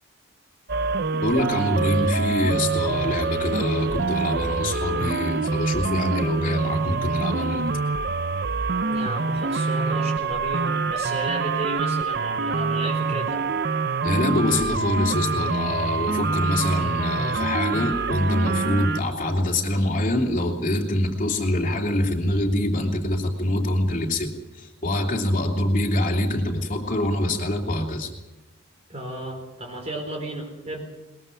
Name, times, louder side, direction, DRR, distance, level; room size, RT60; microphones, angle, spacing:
sound 1, 0.7-19.0, right 4 dB, 50° right, 0.6 m, -25 dB
voice 1, 1.2-7.7 14.0-28.1, left 1 dB, 40° left, 1 dB, 3.0 m, -25 dB
voice 2, 8.9-13.4 28.9-30.8, right 1 dB, 30° right, 1 dB, 4.2 m, -33 dB
21.5 x 21.0 x 5.9 m, 1.1 s
head